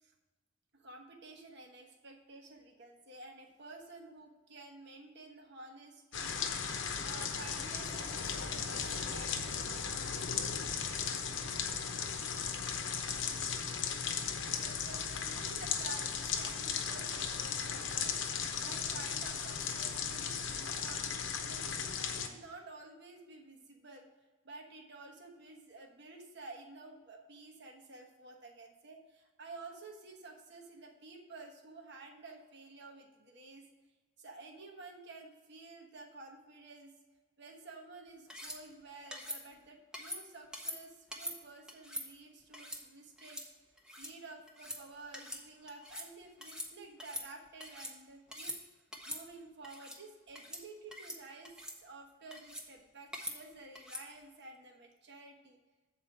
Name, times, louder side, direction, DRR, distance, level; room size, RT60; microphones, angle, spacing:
voice 1, 0.7-6.5 7.0-10.3 12.9-13.5 14.6-18.2 18.5-24.1 24.4-33.7 34.2-36.9 37.4-43.4 44.0-48.5 49.1-55.6, right 3 dB, 55° right, 1 dB, 1.2 m, -52 dB
sound 1, 6.1-22.3, left 6 dB, 60° left, 0.8 m, -36 dB
sound 2, 38.3-38.6 39.1-39.4 39.9-40.2 40.5-40.8 41.1-41.4 41.7-42.0 42.5-42.8 43.2-43.5 43.8-44.1 44.5-44.8 45.1-45.4 45.7-46.1 46.4-46.7 47.0-47.9 48.3-48.6 48.9-49.2 49.6-50.0 50.3-50.6 50.9-51.2 51.4-51.8 52.3-52.7 53.1-53.4 53.7-54.0, equal, 5° right, 0.8 m, -43 dB
7.5 x 4.5 x 7.1 m, 1.2 s
head